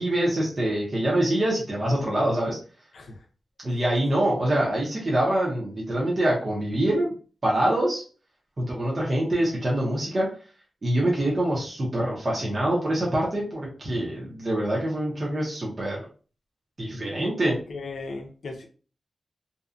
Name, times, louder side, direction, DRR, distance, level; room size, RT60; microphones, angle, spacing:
voice 1, 0.0-2.6 3.6-7.1 7.4-8.0 8.6-10.3 10.8-16.1 16.8-17.5, right 1 dB, 35° right, -5 dB, 0.8 m, -25 dB
voice 2, 2.9-3.2 3.7-3.8 17.5-18.7, left 3 dB, 70° left, 2 dB, 0.5 m, -37 dB
2.6 x 2.3 x 2.5 m, 0.38 s
wide cardioid pair, 125°, 0 cm